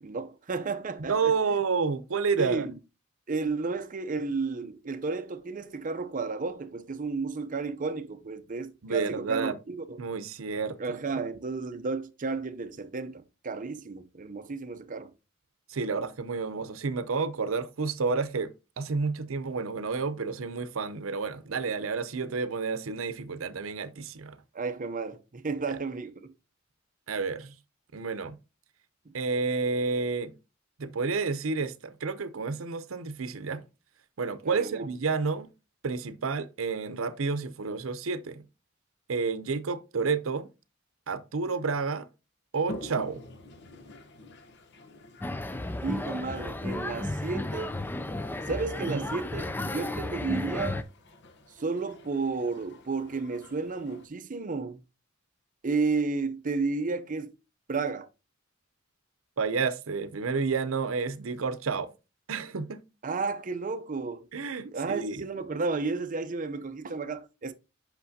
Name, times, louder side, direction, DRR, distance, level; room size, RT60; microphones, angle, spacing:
voice 1, 0.0-1.3 2.4-2.8 3.3-10.0 10.8-15.1 24.5-26.3 29.1-29.2 34.5-34.9 45.8-47.7 48.5-50.8 51.6-54.8 55.6-57.4 57.7-58.1 63.0-64.3 64.7-67.5, right 4 dB, 40° right, 0.6 m, -32 dB
voice 2, 1.1-2.7 8.8-9.6 10.0-11.0 15.7-24.4 25.7-25.8 27.1-27.6 27.9-28.4 29.1-30.3 30.8-33.6 34.2-35.5 35.8-38.4 39.1-40.5 41.1-42.1 42.5-43.2 48.9-49.0 59.4-61.9 62.3-62.8 64.3-65.2, right 4 dB, 85° right, 0.7 m, -30 dB
Toilet flush, 42.6-54.1, left 1 dB, 60° left, 0.9 m, -48 dB
sound 1, 45.2-50.8, left 1 dB, 10° left, 0.4 m, -33 dB
8.1 x 6.0 x 2.7 m
head